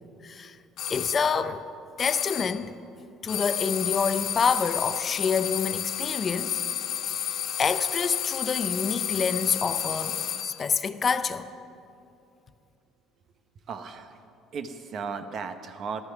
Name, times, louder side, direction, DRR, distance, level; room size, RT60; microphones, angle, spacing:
voice 1, 0.2-0.6 0.9-1.6 2.0-2.7 3.2-6.6 7.6-11.5, left 6 dB, 30° left, 0.5 m, -27 dB
sound 1, 0.8-1.3 2.0-2.6 3.3-10.6, left 9 dB, 55° left, 0.8 m, -31 dB
voice 2, 13.7-14.2 14.5-16.0, right 5 dB, 45° right, 0.8 m, -35 dB
13.5 x 13.0 x 5.9 m
cardioid pair, 145°, 0 cm